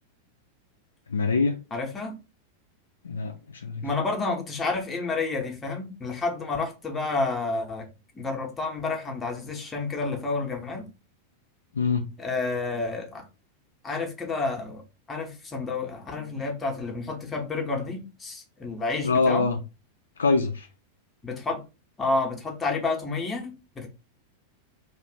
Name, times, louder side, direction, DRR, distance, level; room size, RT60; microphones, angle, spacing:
voice 1, 1.1-1.6 3.0-3.9 11.7-12.1 19.0-19.6 20.2-20.7, left 4 dB, 70° left, 0.4 m, -24 dB
voice 2, 1.7-2.2 3.8-7.9 8.1-10.8 12.2-13.3 13.8-19.5 21.2-21.6 22.0-23.9, left 3 dB, 15° left, 0.8 m, -30 dB
2.5 x 2.4 x 3.5 m
figure-of-eight pair, 90°, 0 cm